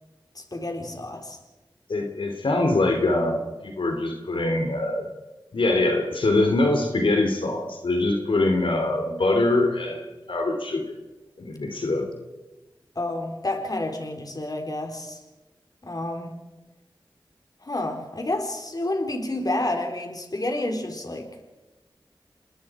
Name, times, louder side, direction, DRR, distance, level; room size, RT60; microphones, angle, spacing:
voice 1, 0.4-1.4 13.0-15.2 15.8-16.4 17.6-21.3, left 1 dB, 45° left, 4 dB, 3.9 m, -29 dB
voice 2, 1.9-5.0 5.5-10.8 11.4-12.1, left 2 dB, 85° left, 3 dB, 3.0 m, -23 dB
28.0 x 20.0 x 4.9 m, 1.1 s
cardioid pair, 40°, 9 cm